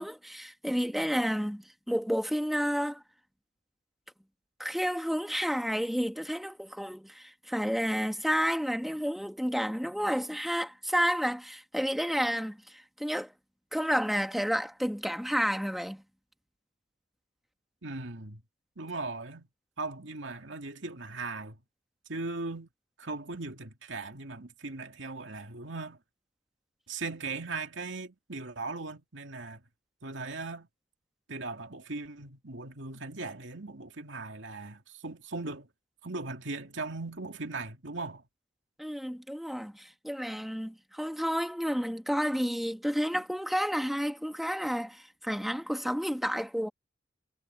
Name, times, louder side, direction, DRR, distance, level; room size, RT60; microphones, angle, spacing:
voice 1, 0.0-3.0 4.6-13.3 13.7-16.0 38.8-46.7, equal, ahead, 1.5 m, -31 dB
voice 2, 17.8-18.4 18.8-19.5 19.8-21.6 22.1-22.7 23.0-26.0 26.9-29.6 30.0-30.7 31.3-35.7 36.0-38.2, right 3 dB, 80° right, 2.4 m, -38 dB
head